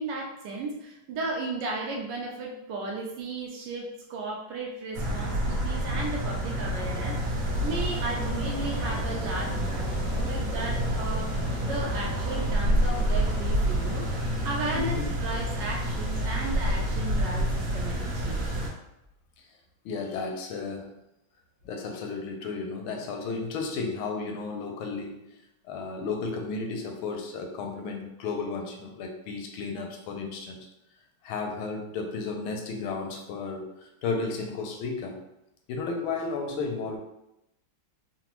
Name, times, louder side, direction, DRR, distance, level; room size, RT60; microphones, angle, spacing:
voice 1, 0.0-11.3 11.6-18.5, right 2 dB, 75° right, 0 dB, 1.0 m, -35 dB
sound 1, 4.9-18.7, equal, 50° right, 1.3 m, -28 dB
voice 2, 14.7-15.1 19.8-20.9 21.6-25.3 25.7-30.6 31.2-35.2 35.7-37.0, left 4 dB, 85° left, 3 dB, 1.4 m, -33 dB
3.9 x 2.1 x 2.9 m, 0.86 s
omnidirectional pair, 2.2 m